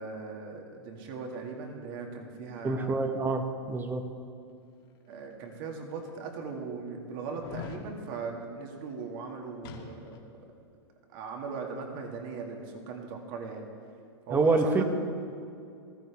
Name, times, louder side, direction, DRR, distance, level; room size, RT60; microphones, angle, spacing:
voice 1, 0.0-3.0 5.1-10.2 11.1-13.7 14.3-14.8, right 4 dB, 55° right, 1 dB, 2.2 m, -39 dB
voice 2, 2.6-4.1 14.3-14.8, right 3 dB, 15° right, 7 dB, 1.1 m, -26 dB
sound 1, 5.3-5.4 6.1-6.2 7.3-7.8 9.6-10.3 10.6-10.7, left 6 dB, 55° left, 1.8 m, -42 dB
15.0 x 14.0 x 3.5 m, 2.4 s
hypercardioid pair, 125°, 14 cm